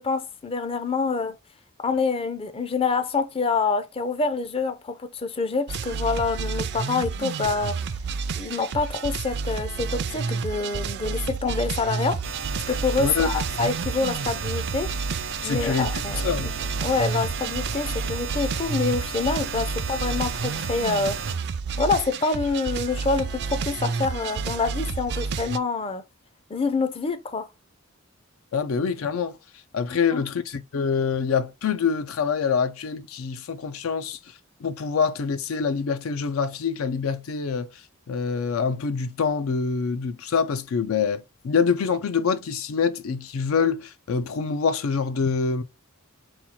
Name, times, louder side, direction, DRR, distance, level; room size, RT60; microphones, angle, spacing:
voice 1, 0.0-1.4 1.8-7.8 8.4-12.2 12.7-14.9 15.4-16.5 16.8-21.2 21.8-26.0 26.5-27.5 30.1-30.2, left 4 dB, 25° left, 0.5 m, -26 dB
sound 1, 5.7-25.6, right 5 dB, 55° right, 0.4 m, -30 dB
sound 2, 12.2-21.4, right 5 dB, 80° right, 0.7 m, -34 dB
voice 2, 13.0-13.3 15.4-16.5 28.5-29.4 29.7-34.2 34.6-37.7 38.1-45.6, left 5 dB, 80° left, 0.4 m, -25 dB
4.3 x 2.3 x 4.2 m
head